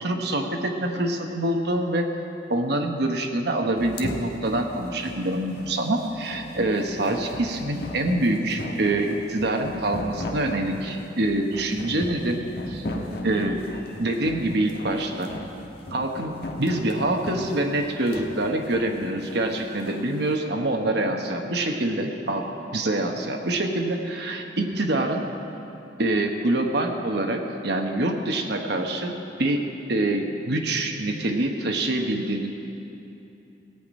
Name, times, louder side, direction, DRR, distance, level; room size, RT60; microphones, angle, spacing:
voice 1, 0.0-2.1 2.5-12.9 13.2-13.6 14.0-15.3 15.9-25.3 26.0-32.5, right 1 dB, 65° right, 3 dB, 1.1 m, -25 dB
sound 1, 3.8-20.0, left 1 dB, 60° left, 1.3 m, -36 dB
17.5 x 5.9 x 8.7 m, 2.9 s
head